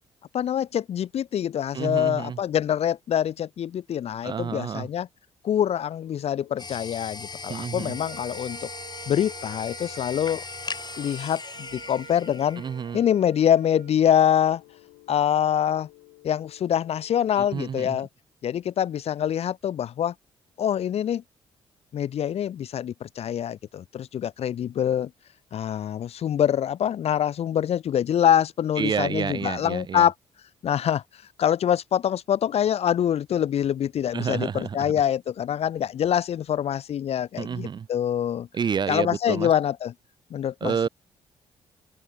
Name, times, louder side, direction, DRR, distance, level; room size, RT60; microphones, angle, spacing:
voice 1, 0.3-5.1 5.4-8.7 9.1-10.5 11.0-12.6 12.9-14.6 15.1-15.9 16.2-18.1 18.4-20.1 20.6-21.2 21.9-25.1 25.5-30.1 30.6-31.0 31.4-38.5 38.9-39.9 40.3-40.9, left 9 dB, 45° left, 0.7 m, -25 dB
voice 2, 1.7-2.4 4.2-4.9 7.5-8.0 12.6-13.0 17.4-18.0 28.8-30.1 34.1-34.9 37.4-37.9 38.5-39.5 40.6-40.9, right 7 dB, 30° right, 0.4 m, -29 dB
sound 1, 6.0-17.6, left 31 dB, 70° left, 3.9 m, -55 dB
sound 2, 6.6-13.2, left 4 dB, 30° left, 3.3 m, -39 dB
Wind instrument woodwind instrument, 7.9-14.0, right 13 dB, 60° right, 6.7 m, -46 dB
open air
figure-of-eight pair, 40°, 14 cm